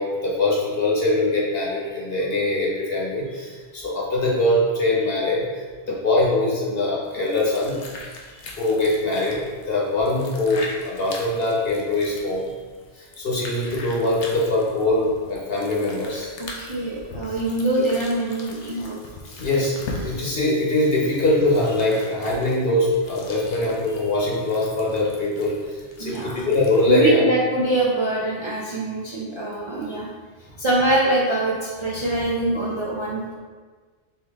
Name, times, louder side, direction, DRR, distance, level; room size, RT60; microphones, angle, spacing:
voice 1, 0.0-7.8 8.3-12.5 12.9-16.3 19.2-27.2, left 2 dB, 55° left, -5 dB, 1.2 m, -23 dB
sound 1, 7.0-27.0, left 2 dB, 80° left, 1.0 m, -41 dB
voice 2, 16.4-19.0 26.0-26.4 26.9-30.1 30.6-33.3, right 2 dB, 35° right, -6 dB, 0.5 m, -24 dB
4.6 x 2.9 x 3.5 m, 1.5 s
omnidirectional pair, 1.2 m